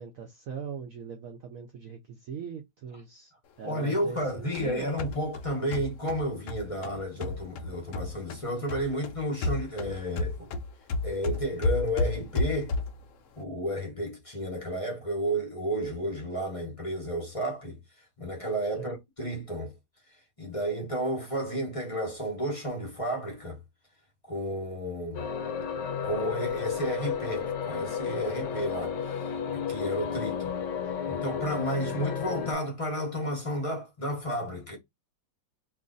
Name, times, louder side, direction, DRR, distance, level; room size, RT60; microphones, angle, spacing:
voice 1, 0.0-3.3 3.6-4.9 18.8-18.9, right 7 dB, 70° right, 0.8 m, -41 dB
voice 2, 3.6-10.5 11.0-12.7 13.4-17.8 18.2-19.8 20.4-23.6 24.3-25.3 26.0-30.6 31.1-34.8, equal, 30° left, 0.6 m, -32 dB
sound 1, 4.2-8.4 8.7-13.1, left 2 dB, 85° left, 0.6 m, -32 dB
sound 2, 25.1-32.5, left 7 dB, 70° left, 1.2 m, -32 dB
3.0 x 2.5 x 3.8 m
omnidirectional pair, 2.2 m